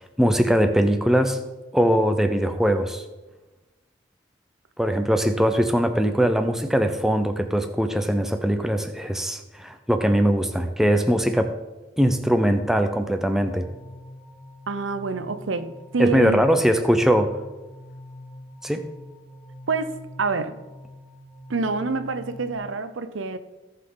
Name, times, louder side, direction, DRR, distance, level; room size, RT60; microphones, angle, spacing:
voice 1, 0.2-1.4 1.7-3.0 4.8-11.5 12.0-13.7 16.0-17.4 18.6-18.8, equal, ahead, 6 dB, 0.6 m, -21 dB
sound 1, 13.3-22.6, left 1 dB, 20° left, 2.3 m, -44 dB
voice 2, 14.7-16.4 19.7-20.5 21.5-23.4, right 4 dB, 90° right, 11 dB, 0.7 m, -27 dB
17.0 x 5.8 x 3.9 m, 1.1 s
head